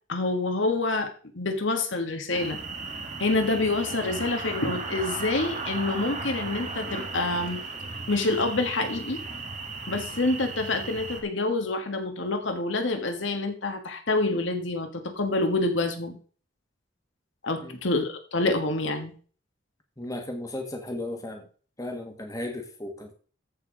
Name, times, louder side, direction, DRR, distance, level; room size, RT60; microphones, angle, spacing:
voice 1, 0.1-2.6 3.2-7.6 8.1-9.2 9.9-16.1 17.4-19.1, left 2 dB, 65° left, 1.5 m, -27 dB
sound 1, 2.3-11.2, right 3 dB, 35° right, 1.9 m, -36 dB
voice 2, 20.0-21.5 21.8-23.1, left 1 dB, 15° left, 1.7 m, -35 dB
14.0 x 4.7 x 5.0 m
head